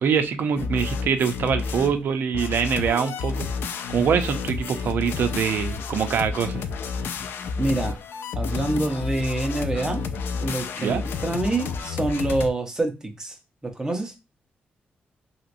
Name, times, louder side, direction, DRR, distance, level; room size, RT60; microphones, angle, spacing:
voice 1, 0.0-3.5 3.9-6.7 10.8-11.0, right 7 dB, 70° right, 0.5 m, -24 dB
sound 1, 0.6-2.0 2.3-12.5, left 5 dB, 85° left, 0.3 m, -30 dB
voice 2, 7.6-8.0 8.3-10.0 10.4-13.4 13.6-14.1, right 2 dB, 15° right, 0.7 m, -26 dB
3.1 x 2.9 x 2.5 m
wide cardioid pair, 130°, 4 cm